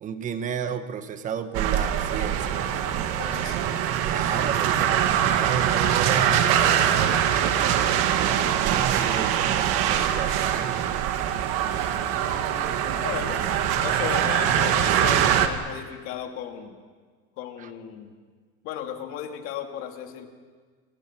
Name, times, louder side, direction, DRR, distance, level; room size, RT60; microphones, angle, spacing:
voice 1, 0.0-2.6 4.0-6.9 7.7-10.9 17.6-17.7, right 7 dB, 25° right, 10 dB, 1.3 m, -32 dB
sound 1, 1.5-15.5, right 10 dB, 45° right, 1.9 m, -23 dB
voice 2, 3.2-3.6 12.0-13.4 13.8-16.8 17.4-18.1 18.6-20.3, left 9 dB, 45° left, 4 dB, 2.7 m, -36 dB
29.0 x 24.0 x 6.1 m, 1.5 s
cardioid pair, 170°, 30 cm